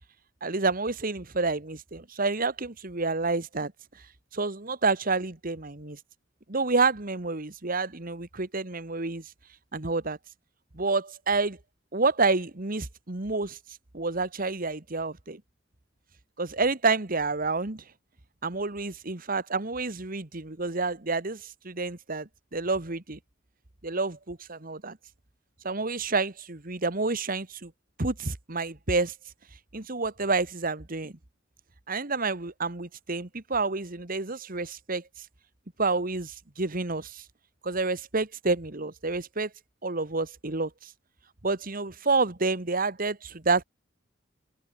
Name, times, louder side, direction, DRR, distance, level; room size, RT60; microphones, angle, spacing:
voice 1, 0.4-3.7 4.3-6.0 6.5-9.2 9.7-10.2 10.7-11.6 11.9-13.6 13.9-15.4 16.4-17.8 18.4-23.2 23.8-25.0 25.6-27.7 28.0-29.1 29.7-31.1 31.9-35.0 35.8-37.2 37.6-39.5 39.8-40.9 41.4-43.6, right 3 dB, 45° right, 1.8 m, -29 dB
head